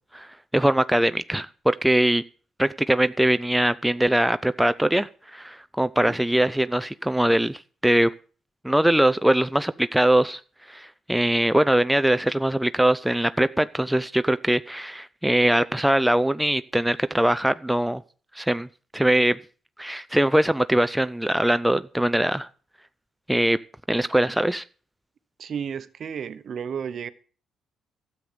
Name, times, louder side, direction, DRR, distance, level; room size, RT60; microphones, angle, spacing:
voice 1, 0.1-2.2 2.6-8.1 8.6-10.4 10.7-18.0 18.3-18.7 18.9-19.4 19.8-22.5 23.3-23.6 23.9-24.6, right 1 dB, 5° right, 0.5 m, -22 dB
voice 2, 25.4-27.1, right 7 dB, 55° right, 1.0 m, -32 dB
12.5 x 7.9 x 6.8 m
cardioid pair, 90°, 0 cm